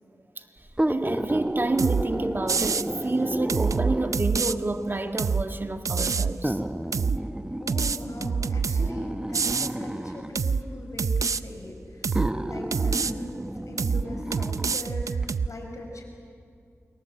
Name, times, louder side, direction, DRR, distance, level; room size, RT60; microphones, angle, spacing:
sound 1, 0.7-4.4 5.3-5.4 6.4-10.4 11.4-11.5 12.1-14.8 15.2-15.3, right 1 dB, 15° right, 1.0 m, -32 dB
voice 1, 0.9-6.6, right 2 dB, 40° right, 5 dB, 1.7 m, -28 dB
sound 2, 1.8-2.1 2.5-2.9 3.5-4.6 5.2-5.5 5.9-6.3 6.9-7.2 7.7-8.9 9.3-9.7 10.4-10.6 11.0-11.4 12.0-12.3 12.7-13.1 13.8-14.1 14.3-15.5, right 5 dB, 80° right, 0.6 m, -26 dB
voice 2, 7.6-16.0, left 1 dB, 70° left, 3 dB, 5.5 m, -40 dB
29.0 x 22.0 x 8.0 m, 2.4 s
wide cardioid pair, 60°, 6 cm